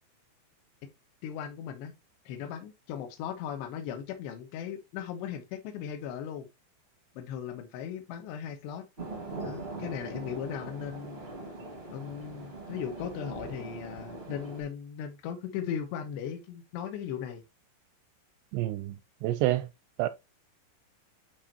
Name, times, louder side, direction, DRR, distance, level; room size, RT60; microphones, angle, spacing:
voice 1, 1.2-1.9 2.3-6.5 7.2-8.9 9.4-11.2 11.9-17.4, left 8 dB, 75° left, 3.1 m, -37 dB
sound 1, 9.0-14.6, right 2 dB, 40° right, 0.8 m, -41 dB
voice 2, 18.5-19.7 20.0-20.1, right 15 dB, 85° right, 2.6 m, -28 dB
10.5 x 4.3 x 2.9 m
omnidirectional pair, 5.3 m